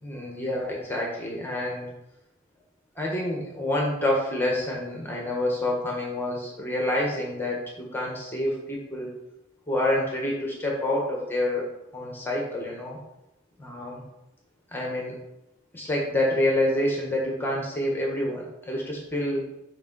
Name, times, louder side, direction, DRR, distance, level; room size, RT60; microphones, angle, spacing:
voice 1, 0.0-1.9 2.9-9.1 9.7-11.7 11.9-13.0 13.6-14.0 14.7-15.2 15.7-19.4, left 1 dB, 10° left, -2 dB, 1.2 m, -27 dB
6.8 x 5.2 x 3.9 m, 0.90 s
head